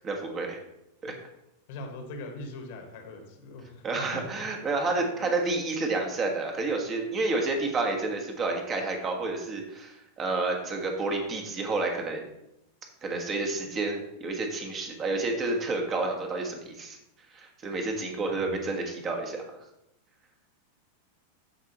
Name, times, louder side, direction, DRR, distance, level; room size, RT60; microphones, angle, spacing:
voice 1, 0.0-0.6 1.0-1.1 3.8-12.2 13.0-17.0 17.3-19.4, right 3 dB, 25° right, 2 dB, 1.6 m, -30 dB
voice 2, 1.7-4.0 5.2-5.3 18.3-18.7, left 2 dB, 50° left, 3 dB, 1.5 m, -41 dB
12.5 x 4.9 x 3.1 m, 0.86 s
figure-of-eight pair, 90°, 0 cm